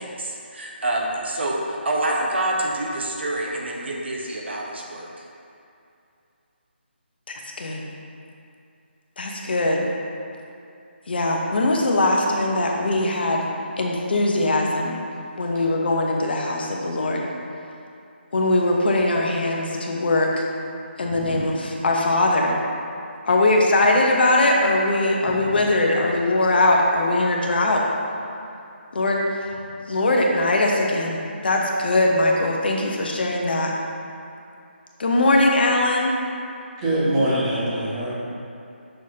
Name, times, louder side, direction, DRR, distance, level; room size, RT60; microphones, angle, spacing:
voice 1, 0.0-5.3, right 1 dB, 65° right, -2 dB, 1.1 m, -27 dB
voice 2, 7.3-7.9 9.2-9.9 11.1-13.5 13.8-15.0 15.4-17.3 18.3-20.3 21.0-22.5 23.3-27.8 28.9-29.2 29.9-33.7 35.0-36.1, left 2 dB, 55° left, -1 dB, 0.9 m, -21 dB
voice 3, 21.0-21.4 25.2-25.3 36.8-38.1, right 1 dB, 20° right, -8 dB, 1.5 m, -24 dB
6.5 x 6.1 x 2.8 m, 2.6 s
figure-of-eight pair, 165°, 6 cm